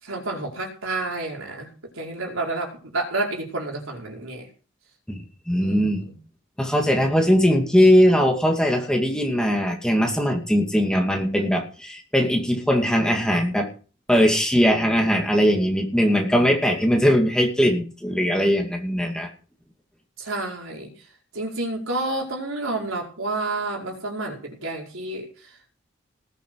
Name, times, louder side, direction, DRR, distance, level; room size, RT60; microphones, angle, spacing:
voice 1, 0.0-4.5 5.5-6.2 20.2-20.9 21.3-25.3, right 2 dB, 85° right, 0 dB, 5.1 m, -30 dB
voice 2, 5.1-6.0 6.6-13.7 14.1-19.3, equal, 5° left, 2 dB, 2.4 m, -20 dB
19.0 x 9.2 x 4.8 m, 0.38 s
head